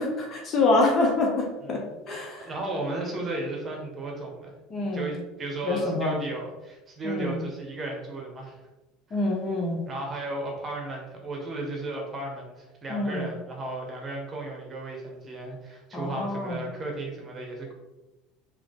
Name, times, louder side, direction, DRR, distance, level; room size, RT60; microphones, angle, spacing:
voice 1, 0.0-2.5 4.7-5.1 5.6-6.2 7.0-7.4 9.1-9.8 12.9-13.3 15.9-16.6, left 2 dB, 40° left, 0 dB, 1.1 m, -26 dB
voice 2, 2.4-8.6 9.9-17.7, right 2 dB, 30° right, 0 dB, 1.4 m, -35 dB
3.6 x 3.3 x 3.8 m, 1.0 s
hypercardioid pair, 85°, 0 cm